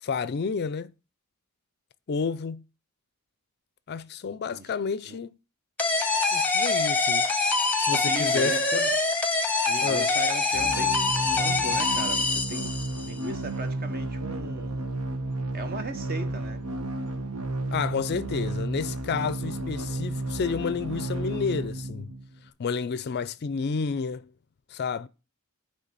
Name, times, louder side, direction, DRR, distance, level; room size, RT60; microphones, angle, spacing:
voice 1, 0.0-0.9 2.1-2.6 3.9-5.4 6.3-7.3 7.9-8.9 9.8-10.1 17.7-22.1 22.6-24.3 24.7-25.1, left 5 dB, 45° left, 0.4 m, -30 dB
sound 1, 5.8-13.1, left 3 dB, 5° left, 0.9 m, -25 dB
voice 2, 7.9-8.9 9.7-12.7 13.0-14.9 15.5-16.6, right 2 dB, 45° right, 1.1 m, -37 dB
sound 2, 10.5-22.5, right 2 dB, 85° right, 1.2 m, -32 dB
9.7 x 3.3 x 6.8 m
head